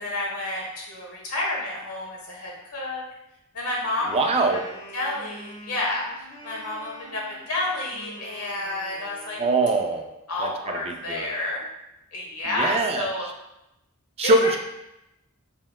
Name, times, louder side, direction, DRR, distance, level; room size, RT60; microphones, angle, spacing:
voice 1, 0.0-3.0 3.5-4.6 4.9-9.4 10.3-11.6 12.1-13.3 14.2-14.5, left 2 dB, 85° left, -2 dB, 1.1 m, -30 dB
Wind instrument woodwind instrument, 3.8-10.1, equal, 25° left, 1.0 m, -45 dB
voice 2, 4.1-4.6 9.4-10.1 10.4-11.3 12.5-13.3 14.2-14.6, right 2 dB, 25° right, 3 dB, 0.4 m, -23 dB
4.2 x 3.6 x 2.2 m, 0.89 s
head